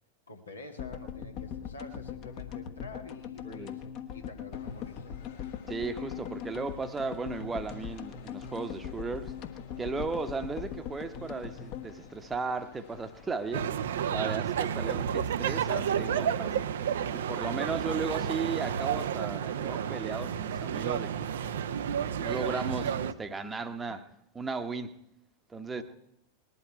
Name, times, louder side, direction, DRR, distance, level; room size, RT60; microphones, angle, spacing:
voice 1, 0.3-5.1 22.2-22.3 23.9-24.0 25.8-25.9, left 2 dB, 75° left, 3 dB, 1.7 m, -47 dB
sound 1, 0.8-13.0 13.3-13.4 13.5-13.6, left 8 dB, 40° left, 1.3 m, -41 dB
voice 2, 3.4-3.8 5.7-9.3 9.8-13.7 14.1-16.6 17.1-21.3 22.2-24.0 24.3-24.9 25.5-25.8, right 4 dB, 15° right, 9 dB, 1.0 m, -35 dB
sound 2, 4.5-23.1, left 6 dB, 60° left, 2.2 m, -55 dB
sound 3, 13.5-23.1, right 8 dB, 60° right, 0.6 m, -31 dB
20.0 x 11.5 x 4.7 m, 0.78 s
figure-of-eight pair, 90°, 0 cm